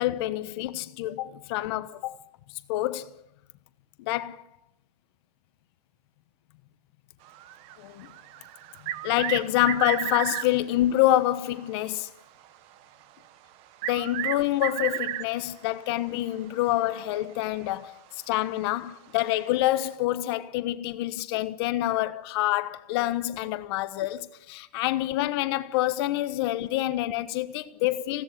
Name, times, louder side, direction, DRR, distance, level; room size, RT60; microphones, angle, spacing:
voice 1, 0.0-2.1 2.7-3.1 4.1-4.4 7.8-8.1 9.0-12.1 13.9-18.0 18.3-28.2, left 15 dB, 40° left, 1.1 m, -27 dB
sound 1, 7.3-10.6 13.0-13.1 13.8-15.5 17.1-17.2 17.6-17.7 19.5-19.6, right 13 dB, 30° right, 0.9 m, -32 dB
20.0 x 17.0 x 9.7 m
hypercardioid pair, 150°, 20 cm